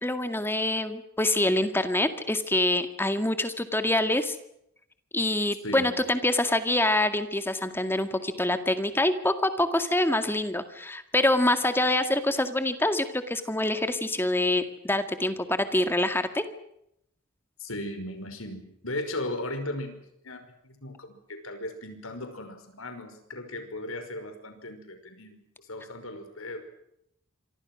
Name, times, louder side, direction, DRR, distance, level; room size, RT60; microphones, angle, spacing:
voice 1, 0.0-4.4 5.1-16.4, left 1 dB, 10° left, 9 dB, 2.0 m, -25 dB
voice 2, 5.6-5.9 17.6-26.6, left 1 dB, 75° left, 7 dB, 5.6 m, -37 dB
27.0 x 25.0 x 6.3 m, 0.76 s
head